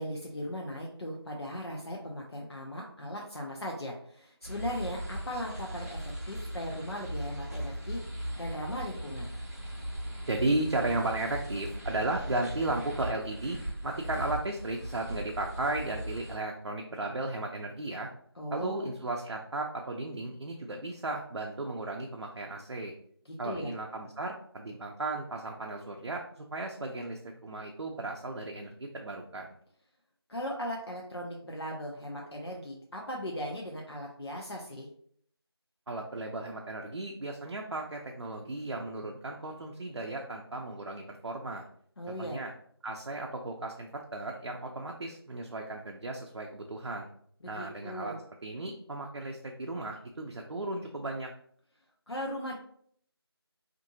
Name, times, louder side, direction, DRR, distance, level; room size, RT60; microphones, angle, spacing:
voice 1, 0.0-9.3 18.4-18.9 23.4-23.7 30.3-34.9 42.0-42.4 47.5-48.2 52.1-52.6, equal, 70° left, -1 dB, 0.6 m, -38 dB
sound 1, 4.4-16.4, equal, 35° right, 0.6 m, -38 dB
voice 2, 10.3-13.6 13.8-18.1 18.5-22.9 23.4-29.5 35.9-41.7 42.2-42.5 42.8-47.1 47.4-48.2 48.4-51.3, right 2 dB, 80° right, 1 dB, 0.4 m, -35 dB
2.7 x 2.5 x 2.6 m, 0.63 s
figure-of-eight pair, 175°, 14 cm